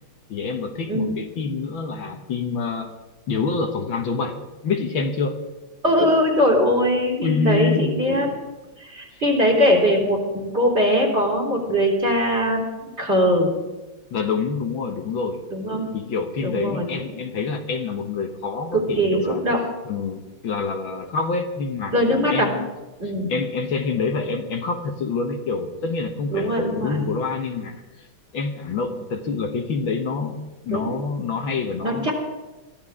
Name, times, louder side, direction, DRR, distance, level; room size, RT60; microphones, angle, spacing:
voice 1, 0.3-2.9 3.3-5.4 7.2-7.9 9.1-9.2 14.1-15.4 15.9-19.4 19.9-22.0 22.3-22.7 23.3-28.1 28.3-32.1, left 4 dB, 65° left, 4 dB, 1.9 m, -27 dB
voice 2, 5.8-8.3 8.8-13.5 15.5-15.9 16.4-16.9 18.7-19.6 21.9-22.5 23.0-23.3 26.3-27.0 30.7-30.9 31.8-32.1, equal, 30° right, -2 dB, 3.9 m, -21 dB
22.5 x 15.0 x 3.7 m, 1.1 s
omnidirectional pair, 2.4 m